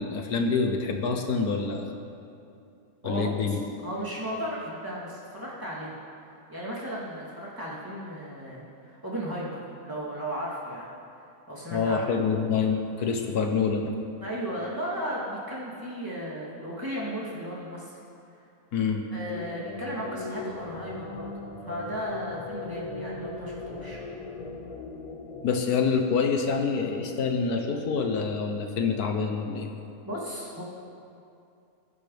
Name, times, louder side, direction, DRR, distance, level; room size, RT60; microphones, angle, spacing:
voice 1, 0.0-1.9 3.0-3.6 11.7-13.9 18.7-19.0 25.4-29.7, left 5 dB, 75° left, 4 dB, 1.5 m, -26 dB
voice 2, 3.0-5.9 6.5-9.6 9.8-10.9 11.5-12.0 14.2-18.0 19.1-21.3 21.7-24.0 30.0-30.6, equal, 15° right, -8 dB, 3.1 m, -35 dB
sound 1, 19.1-26.5, left 2 dB, 45° left, 0.5 m, -39 dB
22.5 x 10.5 x 3.5 m, 2.6 s
omnidirectional pair, 1.6 m